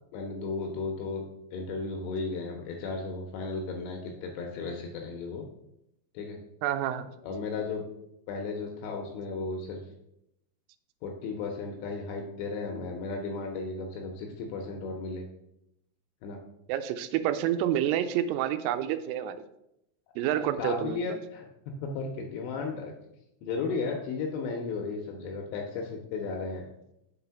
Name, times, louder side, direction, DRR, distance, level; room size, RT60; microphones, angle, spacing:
voice 1, 0.1-5.5 6.1-6.4 7.2-7.8 8.3-9.8 11.0-15.3 16.2-16.4 20.3-22.9 23.4-26.7, left 4 dB, 80° left, 2 dB, 2.5 m, -35 dB
voice 2, 6.6-7.1 16.7-19.4 20.2-21.2, right 11 dB, 90° right, 11 dB, 3.1 m, -28 dB
6.9 x 4.0 x 5.7 m, 0.82 s
omnidirectional pair, 5.6 m